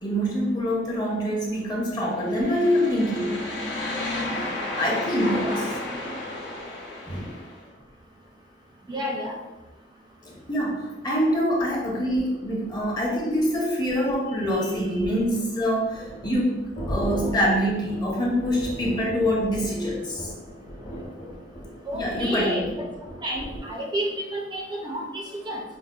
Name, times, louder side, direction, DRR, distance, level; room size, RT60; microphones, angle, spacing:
voice 1, 0.0-3.4 4.7-5.6 7.1-7.3 10.2-16.6 16.9-20.3 21.9-22.8, equal, 25° left, -3 dB, 0.7 m, -25 dB
sound 1, 2.1-7.6, left 2 dB, 90° left, 0.8 m, -32 dB
voice 2, 8.9-9.4 21.9-22.7 23.2-25.6, equal, 25° right, 0 dB, 0.4 m, -31 dB
sound 2, 15.9-23.7, equal, 45° left, 1.0 m, -36 dB
4.8 x 2.0 x 2.2 m, 1.1 s
head